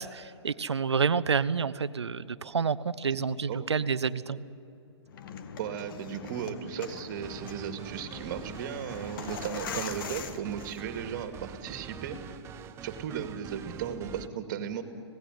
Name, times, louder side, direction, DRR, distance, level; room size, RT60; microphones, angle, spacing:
voice 1, 0.0-4.4, right 5 dB, 75° right, 16 dB, 0.9 m, -29 dB
sound 1, 5.1-11.2, left 7 dB, 50° left, 1.7 m, -42 dB
voice 2, 5.6-12.3 12.8-14.8, right 8 dB, 45° right, 8 dB, 2.3 m, -36 dB
sound 2, 7.1-14.3, right 9 dB, 20° right, 0.7 m, -45 dB
26.5 x 18.0 x 9.7 m, 2.9 s
figure-of-eight pair, 125°, 14 cm